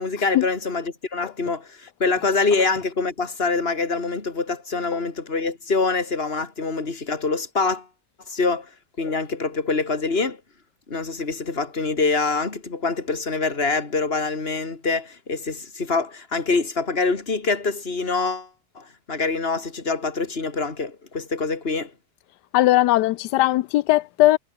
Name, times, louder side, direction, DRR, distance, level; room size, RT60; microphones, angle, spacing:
voice 1, 0.0-7.9 8.3-8.7 9.0-10.4 10.9-18.5 18.7-21.9, left 4 dB, 35° left, 3.1 m, -25 dB
voice 2, 22.5-24.4, left 16 dB, 90° left, 1.2 m, -18 dB
omnidirectional pair, 1.7 m